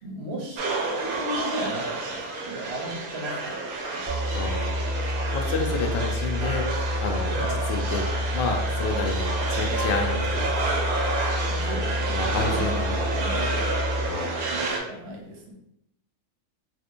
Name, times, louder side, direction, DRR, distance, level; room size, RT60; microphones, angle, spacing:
voice 1, 0.0-3.6 3.9-4.1 7.3-7.6 11.4-14.2 14.5-15.5, right 1 dB, 50° right, -1 dB, 0.8 m, -36 dB
sound 1, 0.6-14.8, right 3 dB, 80° right, 1.1 m, -29 dB
sound 2, 4.1-14.1, left 1 dB, 5° left, 1.0 m, -29 dB
voice 2, 4.3-4.7 5.3-10.7 12.1-13.0 14.1-14.5, left 3 dB, 85° left, 2 dB, 0.5 m, -30 dB
3.4 x 2.8 x 2.5 m, 0.77 s
omnidirectional pair, 1.6 m